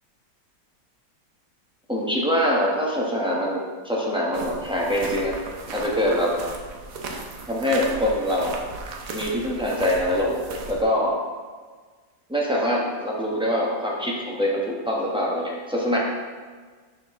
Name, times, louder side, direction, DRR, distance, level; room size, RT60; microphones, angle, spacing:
voice 1, 1.9-5.4 5.7-6.3 7.5-8.6 9.1-10.4 10.7-11.2 12.3-16.0, equal, 5° right, -4 dB, 0.5 m, -24 dB
sound 1, 4.3-10.8, right 3 dB, 60° right, 1.0 m, -36 dB
10.5 x 4.4 x 3.6 m, 1.5 s
omnidirectional pair, 2.1 m